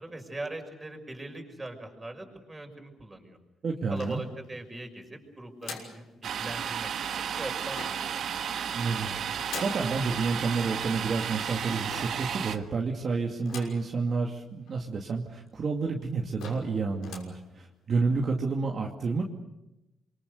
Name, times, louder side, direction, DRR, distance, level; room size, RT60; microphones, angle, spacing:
voice 1, 0.0-3.4 3.9-8.3, right 2 dB, 15° right, 4 dB, 5.8 m, -41 dB
voice 2, 3.6-4.3 8.7-9.1 9.6-19.2, right 4 dB, 45° right, 0 dB, 2.5 m, -30 dB
sound 1, 4.0-4.7 5.6-6.0 7.7-8.2 9.5-9.9 11.9-12.3 13.5-13.9 14.4-14.5 14.7-14.8 15.5-15.6 16.0-16.1 16.4-16.7 17.0-17.4, left 5 dB, 80° left, 6.2 m, -42 dB
Domestic sounds home sounds, 6.2-12.6, right 8 dB, 65° right, 1.5 m, -33 dB
27.5 x 24.0 x 6.7 m, 0.95 s
cardioid pair, 90°, 0 cm